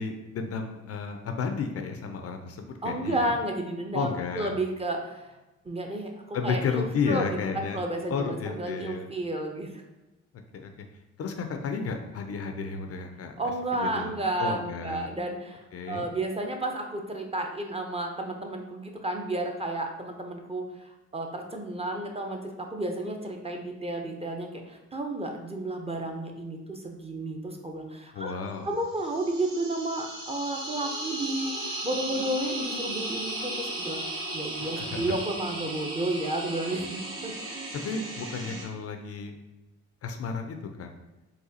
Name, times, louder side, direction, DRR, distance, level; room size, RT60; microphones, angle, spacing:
voice 1, 0.0-3.3 3.9-4.5 6.3-7.8 8.1-9.1 10.5-10.9 11.2-13.4 13.8-15.1 15.7-16.1 28.1-28.7 34.6-35.2 37.7-39.3 40.0-40.9, left 5 dB, 45° left, 5 dB, 0.4 m, -32 dB
voice 2, 2.8-4.1 4.3-5.3 5.6-9.8 13.4-28.3 28.6-37.3, right 1 dB, 20° right, 2 dB, 0.5 m, -32 dB
sound 1, 28.9-38.6, right 1 dB, 40° right, 1.4 m, -36 dB
4.0 x 2.3 x 2.6 m, 1.1 s
supercardioid pair, 60°, 33 cm